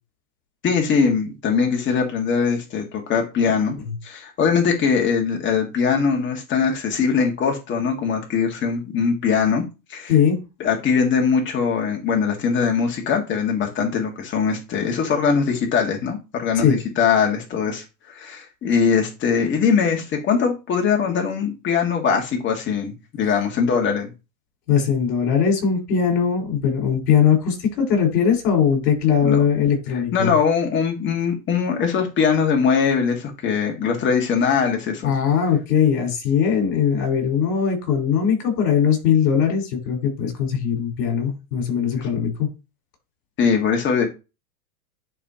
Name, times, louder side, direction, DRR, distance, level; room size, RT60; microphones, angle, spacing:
voice 1, 0.6-3.8 4.0-9.6 9.9-10.1 10.6-17.8 18.1-24.1 29.2-29.4 30.1-35.1 42.0-42.1 43.4-44.1, left 6 dB, 25° left, 1.8 m, -21 dB
voice 2, 24.7-30.3 35.0-42.5, left 7 dB, 65° left, 4.8 m, -20 dB
11.0 x 4.2 x 2.9 m
supercardioid pair, 140°, 49 cm